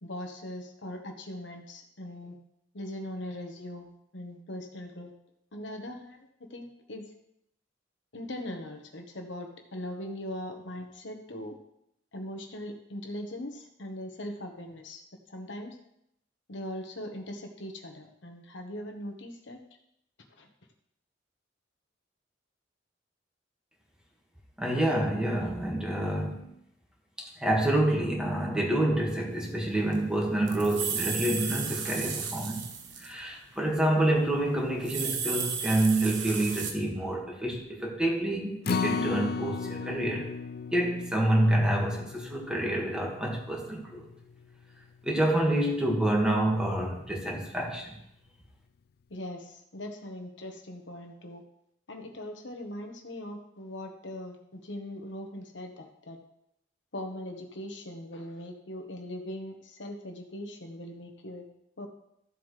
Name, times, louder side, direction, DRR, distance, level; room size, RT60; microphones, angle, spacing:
voice 1, 0.0-2.3 2.7-5.1 5.5-7.1 8.1-11.6 12.1-15.0 15.3-15.8 16.5-19.6 20.4-20.5 49.1-51.4 51.9-56.2 56.9-61.4 61.8-61.9, left 1 dB, 70° left, 3 dB, 1.2 m, -40 dB
voice 2, 24.6-26.5 27.2-32.7 33.0-40.3 40.7-44.1 45.0-47.9, right 1 dB, 5° right, -1 dB, 1.8 m, -27 dB
sound 1, 29.7-29.8 29.9-33.2 33.5-33.7 34.6-36.7, right 6 dB, 70° right, 1.2 m, -34 dB
Acoustic guitar, 38.6-45.0 45.4-45.5 45.9-46.0, left 5 dB, 55° left, 0.4 m, -35 dB
13.5 x 7.4 x 3.3 m, 0.77 s
head